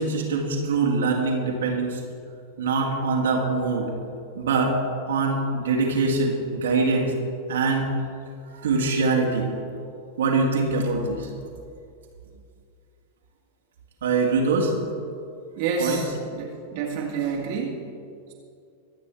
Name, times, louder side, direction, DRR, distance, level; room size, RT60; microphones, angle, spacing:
voice 1, 0.0-2.0 2.6-3.9 4.3-4.8 5.1-7.1 7.5-7.9 8.5-9.5 10.2-11.3 14.0-14.8 15.8-16.0, right 3 dB, 65° right, -1 dB, 2.0 m, -23 dB
voice 2, 15.6-17.8, right 5 dB, 50° right, -1 dB, 1.9 m, -29 dB
24.0 x 9.0 x 3.4 m, 2.4 s
figure-of-eight pair, 90°, 0 cm